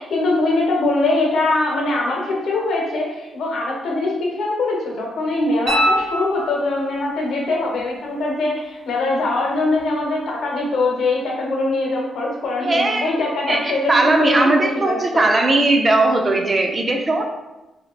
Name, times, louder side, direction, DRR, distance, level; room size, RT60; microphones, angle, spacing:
voice 1, 0.0-14.5 14.8-15.3, left 2 dB, 65° left, -2 dB, 0.9 m, -22 dB
sound 1, 5.7-7.0 9.8-9.9, equal, 60° right, 0.9 m, -23 dB
voice 2, 12.6-17.2, right 2 dB, 25° right, 3 dB, 0.3 m, -18 dB
3.2 x 2.7 x 2.9 m, 1.0 s
cardioid pair, 145°, 0 cm